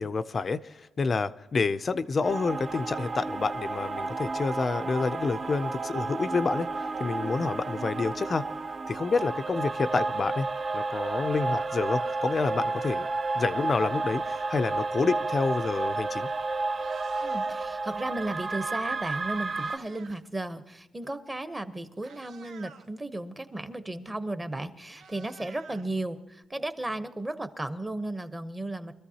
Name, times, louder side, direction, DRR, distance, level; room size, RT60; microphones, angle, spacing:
voice 1, 0.0-8.5 8.9-10.5 10.7-13.1 13.3-16.3, left 4 dB, 30° left, 12 dB, 0.5 m, -28 dB
sound 1, 2.2-19.8, right 3 dB, 30° right, 0.5 m, -31 dB
Meow, 16.6-17.9 18.9-20.3 20.6-20.8 21.5-21.6 22.0-22.9 24.2-24.3 24.5-26.4, right 5 dB, 75° right, 1.0 m, -52 dB
voice 2, 17.2-28.9, right 2 dB, 15° right, 11 dB, 0.8 m, -35 dB
24.5 x 13.5 x 2.8 m, 0.99 s
wide cardioid pair, 150°, 0 cm